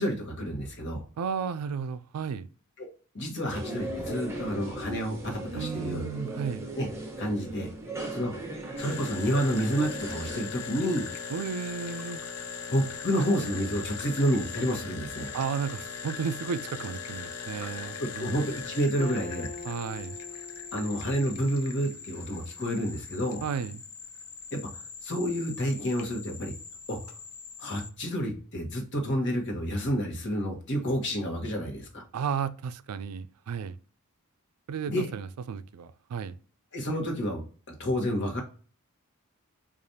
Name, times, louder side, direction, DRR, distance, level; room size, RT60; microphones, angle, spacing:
voice 1, 0.0-1.0 2.8-2.9 3.1-6.0 6.7-6.9 7.2-7.7 8.1-8.3 8.8-11.1 12.7-15.3 18.0-19.5 20.7-23.4 24.5-24.6 25.0-26.5 26.9-27.0 27.6-32.0 34.9-35.1 36.7-38.4, equal, 55° left, 1.1 m, -29 dB
voice 2, 1.2-2.5 5.5-6.7 11.3-12.2 15.3-18.4 19.7-20.2 23.4-23.8 32.1-33.8 34.7-36.4, right 6 dB, 85° right, 0.4 m, -33 dB
sound 1, 3.5-10.4, right 1 dB, 10° right, 0.7 m, -38 dB
sound 2, 8.8-27.9, left 6 dB, 85° left, 0.6 m, -40 dB
Acoustic guitar, 19.0-22.6, left 2 dB, 30° left, 0.4 m, -44 dB
4.8 x 2.5 x 2.7 m
head